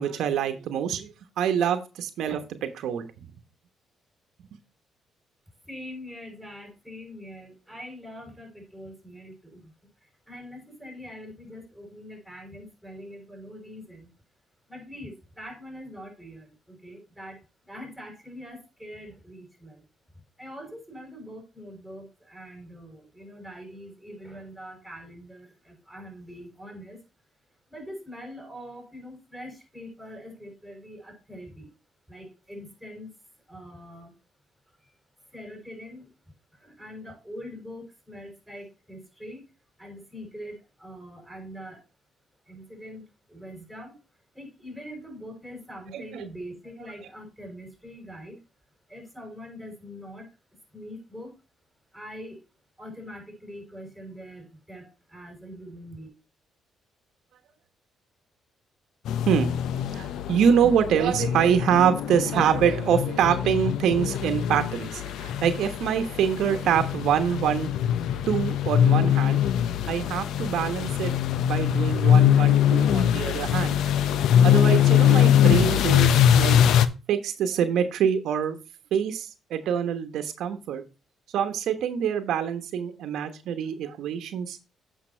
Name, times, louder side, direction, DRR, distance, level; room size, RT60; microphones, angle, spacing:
voice 1, 0.0-3.1 45.9-46.2 59.3-59.5 59.9-67.7 68.3-69.4 69.9-71.2 71.4-73.8 74.4-76.6 77.1-78.6 78.9-80.8 81.3-84.6, right 8 dB, 80° right, 8 dB, 1.0 m, -25 dB
voice 2, 5.7-9.7 10.0-14.1 14.7-19.8 20.4-27.0 27.7-31.7 32.1-33.1 33.5-34.1 34.8-35.0 35.3-36.1 36.5-39.4 39.8-41.8 42.5-43.0 43.3-44.0 44.3-48.4 48.9-50.3 50.7-51.3 51.9-52.4 52.8-56.1, equal, 5° left, 1 dB, 6.0 m, -43 dB
sound 1, 59.1-76.9, left 10 dB, 80° left, 0.6 m, -22 dB
8.5 x 5.8 x 4.3 m, 0.29 s
cardioid pair, 90°, 0 cm